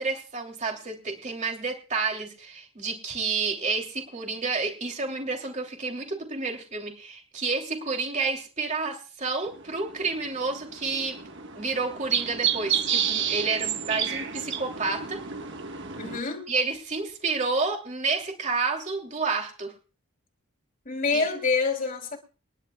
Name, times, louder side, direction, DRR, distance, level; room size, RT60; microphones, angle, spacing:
voice 1, 0.0-11.2 11.5-15.2 16.5-19.7 21.1-21.3, right 4 dB, 35° right, 3.0 m, -30 dB
sound 1, 9.5-16.2, right 8 dB, 55° right, 1.4 m, -30 dB
voice 2, 16.0-16.5 20.8-22.2, left 4 dB, 40° left, 3.1 m, -26 dB
27.0 x 11.0 x 2.4 m
head